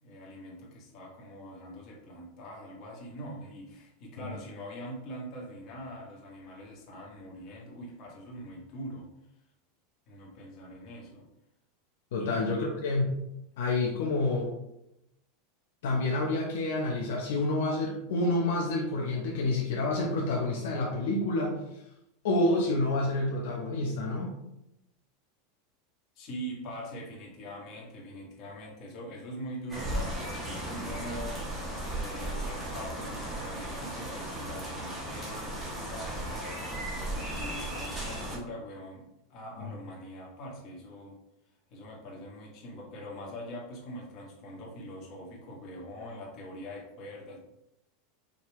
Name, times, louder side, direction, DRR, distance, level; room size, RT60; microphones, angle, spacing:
voice 1, 0.0-9.1 10.1-11.3 12.2-12.7 26.1-31.4 31.9-36.7 37.1-41.2 41.7-47.4, equal, 45° left, -3 dB, 1.5 m, -43 dB
voice 2, 12.1-13.1 13.6-14.5 15.8-21.6 22.2-24.3 39.6-39.7, left 2 dB, 80° left, -2 dB, 0.9 m, -28 dB
sound 1, 29.7-38.4, right 1 dB, 15° right, 1.3 m, -36 dB
5.2 x 2.8 x 3.1 m, 0.83 s
supercardioid pair, 135°, 0 cm